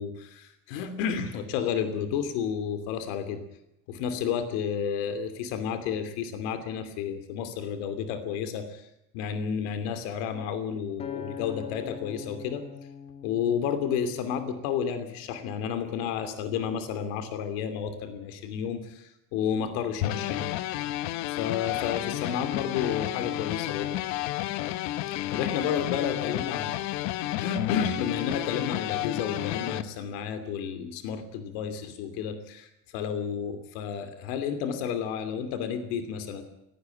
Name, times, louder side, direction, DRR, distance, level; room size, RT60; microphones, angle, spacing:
voice 1, 0.0-3.4 3.9-8.9 9.1-12.6 13.2-20.5 21.3-23.9 25.3-36.4, left 7 dB, 90° left, 10 dB, 2.8 m, -31 dB
Acoustic guitar, 11.0-15.3 15.9-16.2, left 6 dB, 20° left, 1.4 m, -43 dB
sound 1, 20.0-29.8, left 14 dB, 60° left, 1.1 m, -31 dB
18.5 x 17.0 x 9.0 m, 0.82 s
cardioid pair, 175°, 30 cm